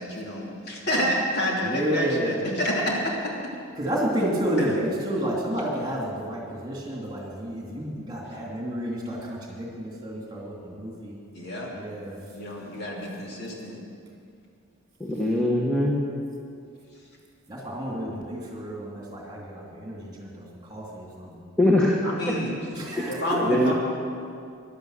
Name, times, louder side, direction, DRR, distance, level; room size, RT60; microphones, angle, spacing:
voice 1, 0.0-3.4 4.6-4.7 11.3-11.7 12.3-13.8 22.0-22.5 23.1-23.7, equal, 50° left, -3 dB, 2.9 m, -28 dB
voice 2, 1.6-2.4 3.8-11.2 11.7-12.2 17.5-21.5 22.7-23.6, equal, 20° right, -2 dB, 2.7 m, -30 dB
voice 3, 15.0-16.0 21.6-21.9 22.3-22.4 23.4-23.7, left 1 dB, 5° left, -4 dB, 1.2 m, -22 dB
15.5 x 11.0 x 6.5 m, 2.4 s
head